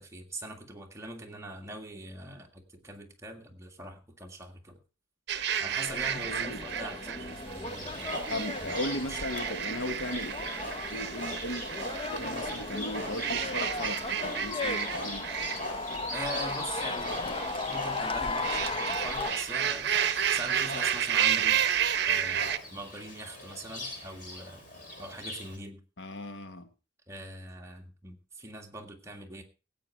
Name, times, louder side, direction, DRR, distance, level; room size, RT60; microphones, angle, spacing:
voice 1, 0.0-4.8 5.6-8.1 8.6-8.8 9.0-9.2 16.1-21.8 22.1-24.7 25.0-25.8 27.1-29.4, right 1 dB, 15° right, 1.8 m, -42 dB
sound 1, 5.3-22.6, right 9 dB, 60° right, 0.9 m, -32 dB
sound 2, 5.9-19.3, left 3 dB, 30° left, 0.8 m, -36 dB
voice 2, 6.3-6.6 8.3-10.3 10.9-11.6 12.1-15.2 26.0-26.7, left 1 dB, 75° left, 1.4 m, -37 dB
Livestock farm animals working animals, 7.6-25.6, left 1 dB, 45° left, 7.7 m, -41 dB
16.5 x 8.6 x 4.5 m
head